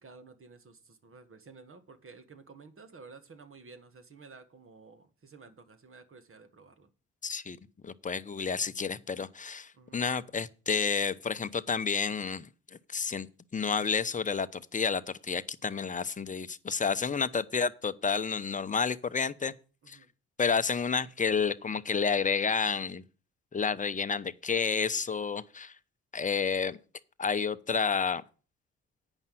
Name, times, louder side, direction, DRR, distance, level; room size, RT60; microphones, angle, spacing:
voice 1, 0.0-6.9 9.7-10.0 19.8-20.1, right 4 dB, 45° right, 1.7 m, -53 dB
voice 2, 7.2-7.6 7.8-12.5 12.9-13.3 13.5-19.5 19.9-20.0 20.4-23.0 23.5-25.7 26.1-26.8 27.2-28.2, left 5 dB, 25° left, 0.8 m, -30 dB
9.0 x 5.5 x 7.6 m
supercardioid pair, 55°, 30 cm